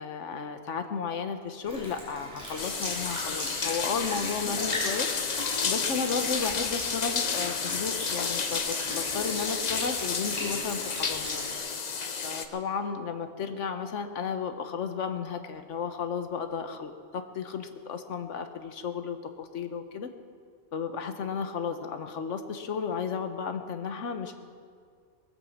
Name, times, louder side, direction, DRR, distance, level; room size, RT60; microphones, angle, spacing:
voice 1, 0.0-5.1 5.6-11.4 12.2-20.1 20.7-24.3, left 6 dB, 70° left, 8 dB, 1.3 m, -33 dB
Sink (filling or washing) / Liquid, 1.6-11.6, equal, 25° right, 5.5 m, -38 dB
sound 1, 2.6-12.4, left 5 dB, 40° left, 0.8 m, -31 dB
20.0 x 8.7 x 7.3 m, 2.1 s
omnidirectional pair, 1.3 m